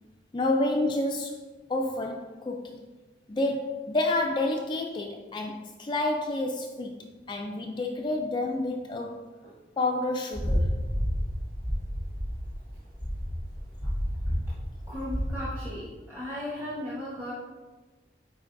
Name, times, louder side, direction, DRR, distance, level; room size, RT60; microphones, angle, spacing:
voice 1, 0.3-1.4 1.7-2.9 3.3-9.3 9.8-10.8, left 2 dB, 25° left, 2 dB, 0.3 m, -29 dB
sound 1, 10.3-15.4, equal, 55° right, 1.8 m, -30 dB
voice 2, 14.9-17.3, left 1 dB, 15° right, -9 dB, 1.1 m, -36 dB
9.5 x 4.0 x 2.6 m, 1.2 s
head